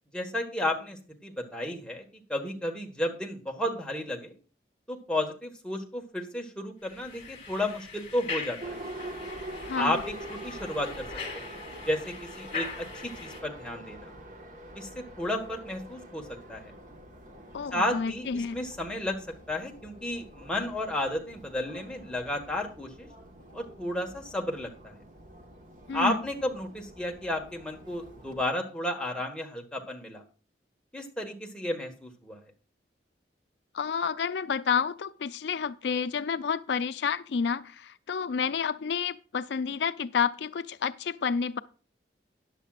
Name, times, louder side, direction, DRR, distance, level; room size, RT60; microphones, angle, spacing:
voice 1, 0.1-2.0 2.3-4.3 4.9-8.8 9.8-11.1 11.3-11.4 11.8-14.1 14.7-16.2 16.5-16.7 17.7-19.2 19.5-23.1 23.5-24.7 25.9-30.2 30.9-32.4, left 1 dB, 5° left, 1.5 m, -32 dB
sound 1, 6.9-13.4, left 4 dB, 35° left, 2.8 m, -41 dB
Subway metro underground, 8.6-28.4, right 1 dB, 45° right, 1.5 m, -45 dB
voice 2, 9.6-10.0 17.5-18.6 25.9-26.2 33.7-41.6, left 6 dB, 75° left, 0.4 m, -30 dB
13.5 x 10.0 x 2.4 m
head